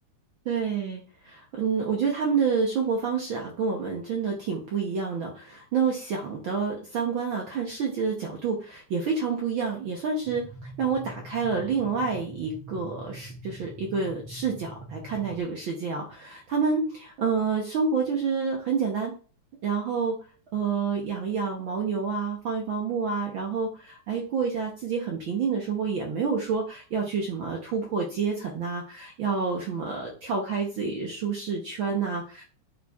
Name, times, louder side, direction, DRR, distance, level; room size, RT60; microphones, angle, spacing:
voice 1, 0.4-19.1 19.6-20.1 20.5-32.4, right 5 dB, 70° right, 0 dB, 1.1 m, -28 dB
sound 1, 10.2-15.4, right 2 dB, 45° left, 1.9 m, -44 dB
9.8 x 4.4 x 2.4 m, 0.39 s
omnidirectional pair, 3.5 m